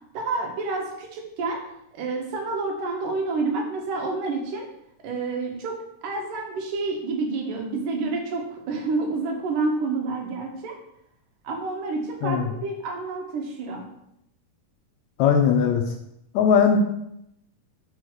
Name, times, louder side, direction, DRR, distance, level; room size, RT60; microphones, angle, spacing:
voice 1, 0.1-1.6 1.9-4.7 5.0-5.8 6.0-10.8 11.4-13.9, right 3 dB, 85° right, 2 dB, 2.8 m, -29 dB
voice 2, 12.2-12.5 15.2-15.9 16.3-16.8, left 7 dB, 75° left, 4 dB, 1.8 m, -19 dB
5.3 x 5.0 x 6.2 m, 0.79 s
omnidirectional pair, 3.7 m